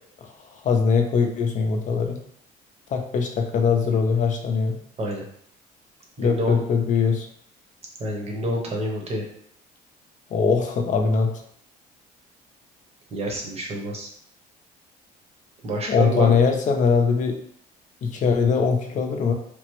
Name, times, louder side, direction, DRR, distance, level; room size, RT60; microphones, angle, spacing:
voice 1, 0.2-2.2 2.9-4.8 6.2-7.3 10.3-11.3 15.9-17.4 18.0-19.3, left 5 dB, 45° left, 4 dB, 0.5 m, -21 dB
voice 2, 6.2-6.6 8.0-9.3 13.1-14.1 15.6-16.4, right 1 dB, 35° right, 0 dB, 0.9 m, -28 dB
3.3 x 2.0 x 3.0 m, 0.68 s
cardioid pair, 110°, 17 cm